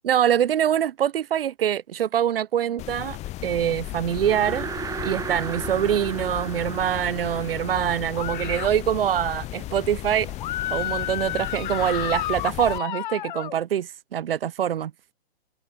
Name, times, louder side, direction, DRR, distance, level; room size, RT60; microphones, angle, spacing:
voice 1, 0.0-4.7 5.0-10.3 10.7-14.9, right 10 dB, 65° right, 2.8 m, -24 dB
sound 1, 2.8-12.8, left 16 dB, 20° left, 2.0 m, -35 dB
sound 2, 4.0-9.4, right 6 dB, 10° right, 3.4 m, -36 dB
sound 3, 8.1-8.7 10.4-13.5, left 13 dB, 50° left, 2.3 m, -30 dB
hypercardioid pair, 145°, 31 cm